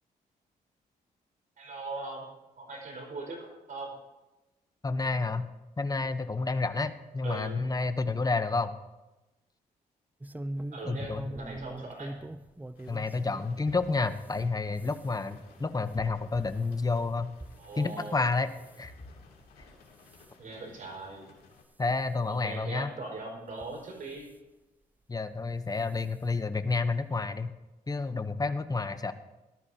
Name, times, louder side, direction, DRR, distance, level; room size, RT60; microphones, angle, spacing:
voice 1, 1.6-4.0 7.2-7.6 10.7-12.1 17.6-18.3 20.4-21.3 22.3-24.3, right 3 dB, 55° right, 0 dB, 5.0 m, -40 dB
voice 2, 4.8-5.5 5.8-8.7 10.9-11.3 12.9-17.3 17.8-18.5 18.8-18.9 21.8-22.9 25.1-27.5 27.9-29.1, left 3 dB, 25° left, 10 dB, 0.9 m, -30 dB
sound 1, 10.2-13.5 14.0-18.1 18.5-18.9 19.4-19.7 20.0-20.3 20.9-21.0 21.4-21.5 22.6-22.7 23.5-24.3 25.4-25.6 26.0-26.1 26.4-26.5, right 1 dB, 10° right, 0.5 m, -43 dB
sound 2, 11.0-12.5 12.8-14.4 14.7-14.9 15.5-16.6 16.9-17.0 18.2-20.2 20.8-21.7, left 2 dB, 40° left, 3.9 m, -55 dB
sound 3, 12.7-21.6, left 4 dB, 80° left, 2.8 m, -58 dB
18.0 x 12.5 x 2.8 m, 1.0 s
cardioid pair, 75°, 16 cm